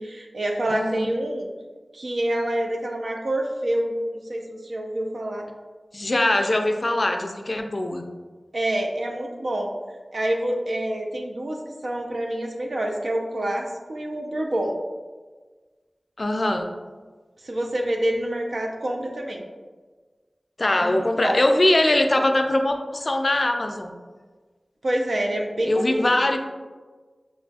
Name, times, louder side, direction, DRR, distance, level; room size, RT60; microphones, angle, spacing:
voice 1, 0.0-1.5 1.9-3.9 4.3-5.5 8.5-9.7 10.1-14.7 17.4-19.4 20.8-21.4 24.8-26.2, right 1 dB, 75° right, 1 dB, 0.5 m, -27 dB
voice 2, 0.7-1.1 5.9-8.0 16.2-16.7 20.6-23.9 25.7-26.4, left 1 dB, 50° left, 5 dB, 0.3 m, -22 dB
5.2 x 2.4 x 2.3 m, 1.4 s
wide cardioid pair, 45°, 0 cm